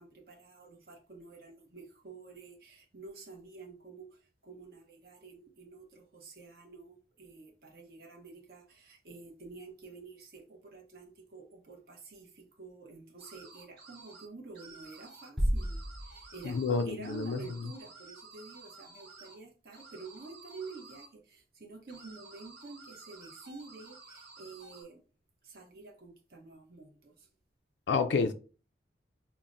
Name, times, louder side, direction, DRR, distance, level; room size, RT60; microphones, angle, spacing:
voice 1, 0.0-25.0 25.4-27.3, right 3 dB, 55° right, 0.8 m, -49 dB
sound 1, 13.2-14.3 14.5-15.3 15.6-19.4 19.7-21.1 21.9-24.8, right 4 dB, 70° right, 1.2 m, -53 dB
sound 2, 15.4-17.2, equal, ahead, 0.5 m, -33 dB
voice 2, 16.4-17.4 27.9-28.3, left 4 dB, 75° left, 0.4 m, -29 dB
5.6 x 2.1 x 2.5 m
head